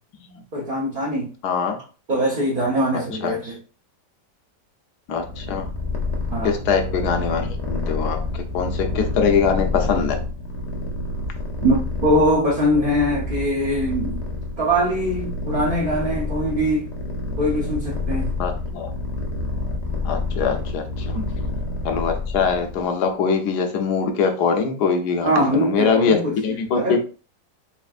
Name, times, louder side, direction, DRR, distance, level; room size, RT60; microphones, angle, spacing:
voice 1, 0.5-1.3 2.1-3.6 6.3-6.6 11.6-14.2 14.6-16.9 17.4-18.3 21.1-21.3 25.2-27.0, equal, 45° right, 0.7 m, -22 dB
voice 2, 1.4-1.8 3.2-3.4 5.1-5.7 6.4-8.2 8.5-10.2 18.4-18.9 20.0-20.8 21.8-27.0, left 5 dB, 70° left, 1.2 m, -22 dB
Purr, 5.2-22.9, left 3 dB, 45° left, 0.5 m, -28 dB
4.2 x 3.4 x 2.4 m
omnidirectional pair, 1.9 m